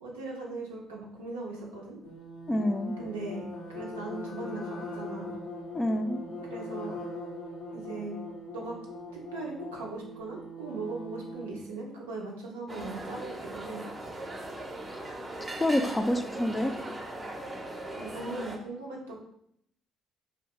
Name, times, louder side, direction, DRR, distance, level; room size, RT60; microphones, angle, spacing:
voice 1, 0.0-2.0 3.0-5.3 6.5-7.0 7.7-8.2 8.5-8.8 9.1-13.9 18.0-19.2, right 2 dB, 90° right, -1 dB, 0.4 m, -39 dB
sound 1, 2.0-11.7, left 1 dB, 80° left, 0.5 m, -41 dB
voice 2, 2.5-3.0 5.7-6.2 15.6-16.8, left 1 dB, 15° left, 7 dB, 0.3 m, -27 dB
sound 2, 12.7-18.6, right 1 dB, 35° right, 0.6 m, -39 dB
2.6 x 2.0 x 3.0 m, 0.72 s
hypercardioid pair, 50°, 0 cm